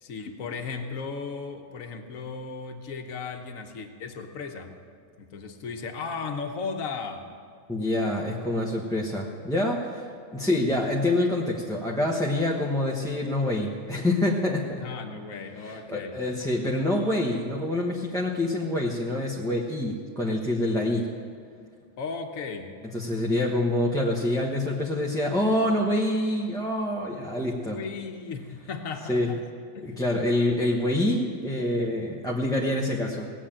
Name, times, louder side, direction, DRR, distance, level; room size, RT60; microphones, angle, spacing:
voice 1, 0.0-4.8 5.2-7.3 10.4-10.5 14.8-16.2 22.0-22.7 27.6-29.4 29.7-30.0, left 5 dB, 75° left, 4 dB, 1.5 m, -36 dB
voice 2, 7.7-14.9 15.6-21.1 22.9-27.8 29.1-29.3 29.8-33.3, left 1 dB, 5° left, -3 dB, 0.9 m, -26 dB
18.5 x 7.5 x 8.8 m, 2.2 s
omnidirectional pair, 1.4 m